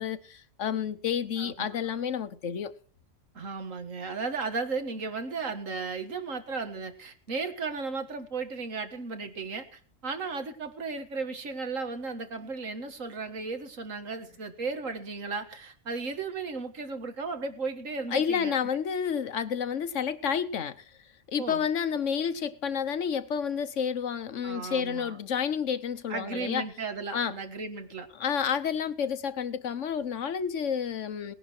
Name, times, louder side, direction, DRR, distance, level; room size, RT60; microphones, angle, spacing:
voice 1, 0.0-2.7 18.1-20.9 21.3-26.6 27.1-27.4 28.1-31.3, left 7 dB, 70° left, 1.3 m, -30 dB
voice 2, 1.4-1.7 3.4-18.6 21.3-21.7 24.4-25.2 26.1-28.1, right 4 dB, 90° right, 2.0 m, -35 dB
19.0 x 10.5 x 4.5 m
omnidirectional pair, 1.3 m